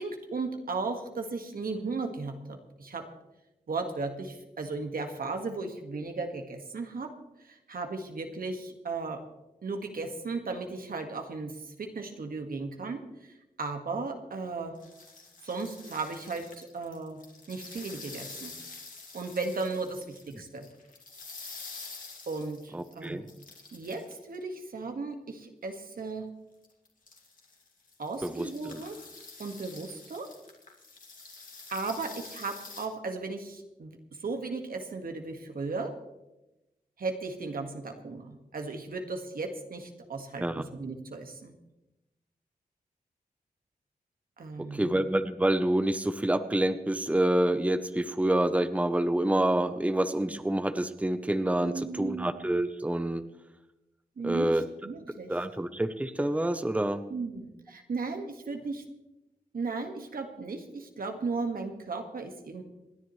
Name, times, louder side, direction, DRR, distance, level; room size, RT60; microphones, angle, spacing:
voice 1, 0.0-3.1 3.7-9.2 9.6-14.8 15.4-17.2 17.5-18.5 19.1-20.7 22.3-23.2 23.7-26.3 28.0-29.0 29.4-30.3 31.7-36.0 37.0-41.5 44.4-45.0 51.6-52.3 54.2-55.3 57.1-58.8 59.5-62.6, right 3 dB, 75° right, 5 dB, 1.8 m, -36 dB
sound 1, 14.7-24.4 25.9-26.0 26.6-32.9, left 3 dB, 60° left, 2.6 m, -47 dB
voice 2, 22.7-23.2 28.2-28.8 40.4-40.6 44.7-53.2 54.2-54.6 55.3-57.0, right 1 dB, 10° right, 10 dB, 0.8 m, -27 dB
27.0 x 10.5 x 3.2 m, 0.96 s
wide cardioid pair, 70°, 15 cm